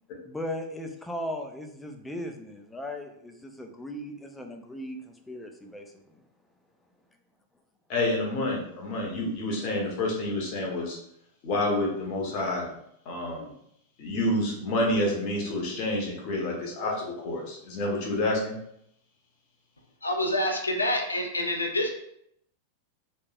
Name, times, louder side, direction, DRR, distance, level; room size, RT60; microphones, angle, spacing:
voice 1, 0.2-5.9, left 1 dB, 10° left, 4 dB, 0.4 m, -37 dB
voice 2, 7.9-11.0 11.4-12.7 13.1-13.5 14.0-18.5, left 1 dB, 40° left, -2 dB, 0.8 m, -28 dB
voice 3, 20.0-21.9, left 1 dB, 80° left, 3 dB, 0.5 m, -27 dB
3.1 x 2.5 x 2.3 m, 0.73 s
figure-of-eight pair, 90°, 0 cm